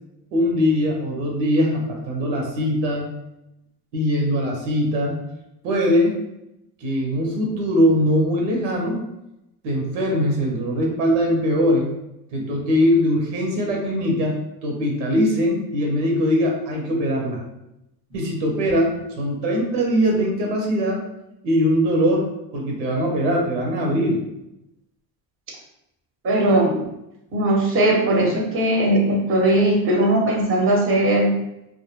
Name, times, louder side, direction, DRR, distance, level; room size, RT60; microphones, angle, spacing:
voice 1, 0.3-3.1 3.9-5.2 5.6-6.2 6.8-9.0 9.6-11.9 12.3-17.4 18.1-21.0 21.4-24.2, equal, 90° right, 0 dB, 0.9 m, -21 dB
voice 2, 26.2-26.9 27.3-31.4, right 1 dB, 25° right, -1 dB, 0.8 m, -19 dB
2.2 x 2.2 x 3.0 m, 0.87 s
supercardioid pair, 100°, 47 cm